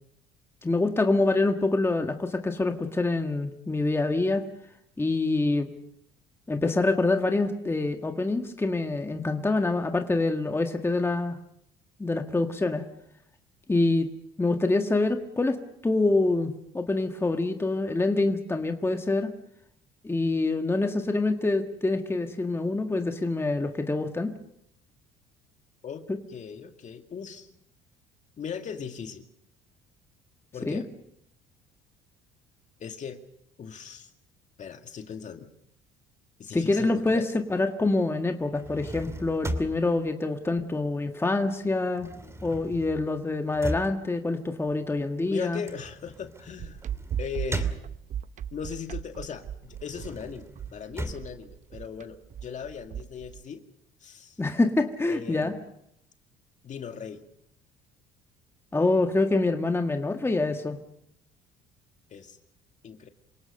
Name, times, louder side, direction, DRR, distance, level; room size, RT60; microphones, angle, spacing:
voice 1, 0.6-4.4 5.0-5.7 6.5-11.4 12.0-12.8 13.7-14.1 14.4-15.6 15.8-19.3 20.0-24.3 26.1-26.2 30.6-30.8 36.5-42.1 42.4-45.6 54.4-55.5 58.7-60.8, left 2 dB, 15° left, 5 dB, 1.7 m, -26 dB
voice 2, 25.8-27.5 28.4-29.2 30.5-30.9 32.8-33.2 33.6-34.1 34.6-35.5 36.4-37.3 45.3-46.8 47.2-47.7 48.5-53.6 54.0-54.4 55.1-55.7 56.6-57.2 62.1-62.4 62.8-63.1, left 7 dB, 45° left, 6 dB, 2.1 m, -38 dB
sound 1, 38.4-41.3 41.5-48.4 48.8-52.4, right 1 dB, 15° right, 2.7 m, -38 dB
sound 2, 46.6-53.4, right 9 dB, 45° right, 0.8 m, -36 dB
27.5 x 18.0 x 6.6 m, 0.74 s
supercardioid pair, 80°, 17 cm